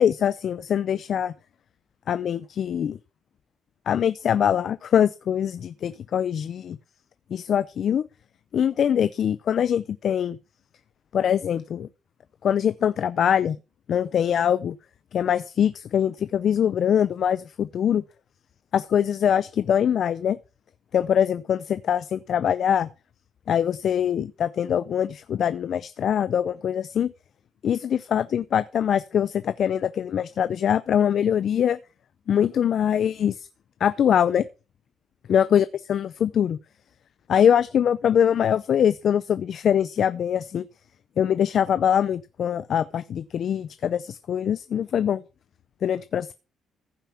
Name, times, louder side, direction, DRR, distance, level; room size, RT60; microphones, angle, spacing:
voice 1, 0.0-1.3 2.1-3.0 3.9-6.8 7.3-8.0 8.5-10.4 11.1-11.9 12.4-13.6 13.9-14.8 15.1-18.0 18.7-20.4 20.9-22.9 23.5-27.1 27.6-31.8 32.3-33.5 33.8-34.5 35.3-35.6 35.9-36.6 37.3-40.7 41.2-45.2 45.8-46.3, left 9 dB, 60° left, 0.5 m, -23 dB
15.0 x 5.6 x 5.8 m
cardioid pair, 90°, 0 cm